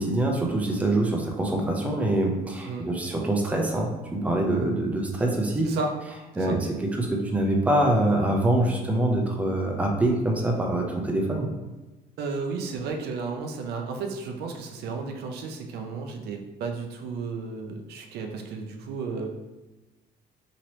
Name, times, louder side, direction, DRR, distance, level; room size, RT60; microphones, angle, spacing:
voice 1, 0.0-5.7 6.4-11.5, right 1 dB, 10° right, 0 dB, 0.6 m, -25 dB
voice 2, 12.2-19.3, right 4 dB, 75° right, 3 dB, 0.5 m, -33 dB
3.0 x 2.9 x 2.9 m, 1.1 s
cardioid pair, 110°, 17 cm